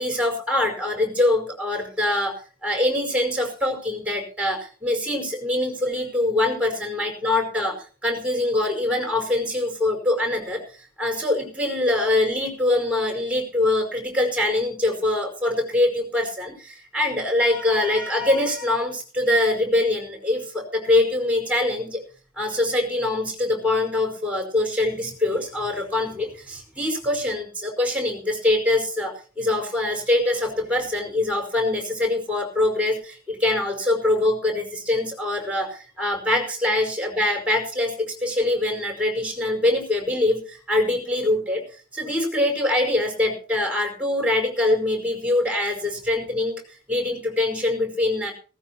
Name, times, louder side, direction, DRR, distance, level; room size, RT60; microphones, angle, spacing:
voice 1, 0.0-22.0 22.4-41.6 41.9-46.6 46.9-48.3, left 1 dB, 5° right, 3 dB, 5.1 m, -24 dB
18.5 x 16.5 x 2.9 m, 0.38 s
head